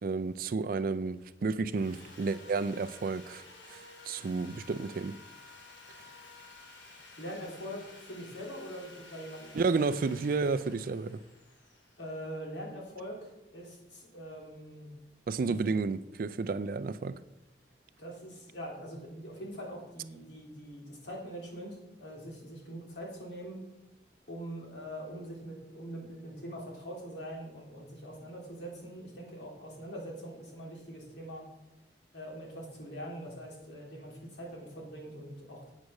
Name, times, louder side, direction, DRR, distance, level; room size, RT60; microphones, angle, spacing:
voice 1, 0.0-3.4 3.7-5.2 9.5-11.2 15.3-17.2, right 4 dB, 50° right, 0.4 m, -31 dB
Sawing, 1.7-12.8, left 3 dB, 90° left, 2.3 m, -53 dB
voice 2, 7.2-9.9 12.0-14.9 15.5-15.6 18.0-23.6 24.3-31.5 32.1-35.7, equal, 70° left, 3.2 m, -43 dB
8.3 x 6.4 x 6.3 m
head